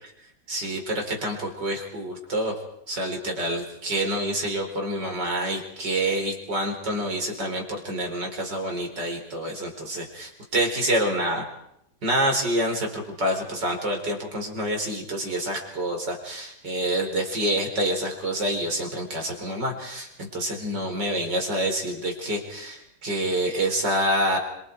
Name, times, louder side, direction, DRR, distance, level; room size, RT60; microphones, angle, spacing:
voice 1, 0.5-2.6 2.9-11.5 12.0-24.4, right 1 dB, 55° right, 2 dB, 5.3 m, -27 dB
28.5 x 26.0 x 4.9 m, 0.76 s
omnidirectional pair, 2.2 m